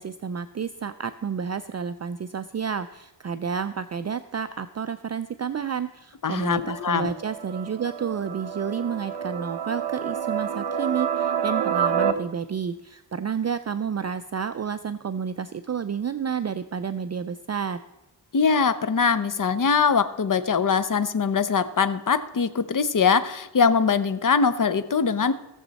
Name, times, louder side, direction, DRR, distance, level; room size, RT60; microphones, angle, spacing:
voice 1, 0.0-17.8, right 7 dB, 40° right, 11 dB, 0.4 m, -30 dB
voice 2, 6.2-7.1 18.3-25.3, left 5 dB, 45° left, 12 dB, 0.8 m, -22 dB
sound 1, 6.6-12.1, right 8 dB, 75° right, 1.0 m, -28 dB
17.0 x 7.1 x 4.1 m, 1.0 s
wide cardioid pair, 85°, 43 cm